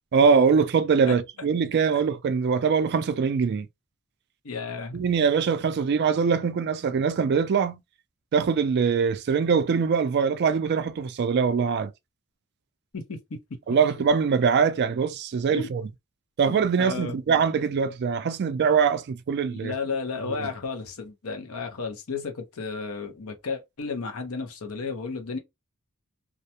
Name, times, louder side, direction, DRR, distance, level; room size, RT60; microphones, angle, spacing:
voice 1, 0.1-3.7 4.9-7.8 8.3-11.9 13.7-15.8 16.4-19.7 20.3-20.5, right 6 dB, 50° right, 0.3 m, -23 dB
voice 2, 4.4-5.0 12.9-13.6 15.6-15.7 16.5-17.2 19.5-25.4, left 4 dB, 75° left, 0.7 m, -33 dB
2.4 x 2.1 x 2.8 m
head